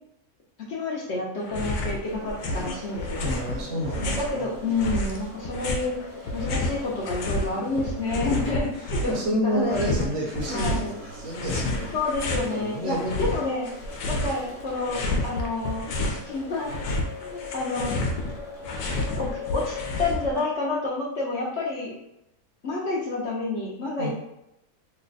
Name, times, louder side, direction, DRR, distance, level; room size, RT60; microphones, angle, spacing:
voice 1, 0.7-3.2 4.2-6.0 6.3-10.0 10.5-10.9 11.9-13.7 14.1-16.7 17.2-18.0 19.1-22.0 22.6-24.1, left 3 dB, 60° left, -4 dB, 0.8 m, -29 dB
sound 1, 1.4-2.0 2.3-4.4 4.8-7.5 7.8-9.2 9.7-10.9 11.3-12.5 12.9-14.4 14.7-16.2 16.5-20.4, left 1 dB, 80° left, 1.1 m, -30 dB
sound 2, 2.0-20.2, left 2 dB, 40° left, 1.1 m, -41 dB
voice 2, 3.2-4.5 8.3-8.6 9.1-11.9 12.4-13.2 24.0-24.1, equal, 60° right, -2 dB, 1.1 m, -30 dB
3.2 x 2.1 x 3.8 m, 0.84 s
omnidirectional pair, 1.6 m